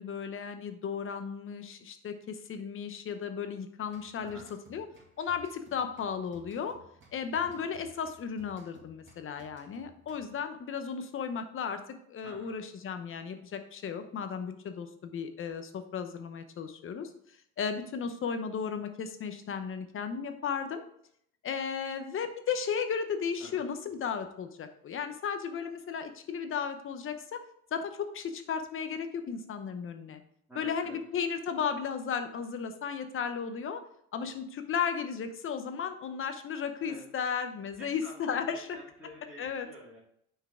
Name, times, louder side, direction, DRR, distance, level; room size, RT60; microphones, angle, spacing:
voice 1, 0.0-4.4 4.7-4.9 5.2-6.8 7.1-11.8 12.1-17.1 17.6-20.8 21.4-27.4 27.7-30.2 30.6-33.8 34.1-38.7 39.4-39.7, left 6 dB, 35° left, 8 dB, 0.8 m, -35 dB
sound 1, 3.9-10.5, right 1 dB, 35° right, 2.3 m, -59 dB
voice 2, 4.1-4.5 7.4-7.6 12.2-12.5 23.4-23.6 30.5-31.0 36.8-37.0 37.8-40.0, right 1 dB, 5° right, -8 dB, 2.1 m, -50 dB
6.7 x 4.6 x 3.7 m, 0.69 s
cardioid pair, 120°, 34 cm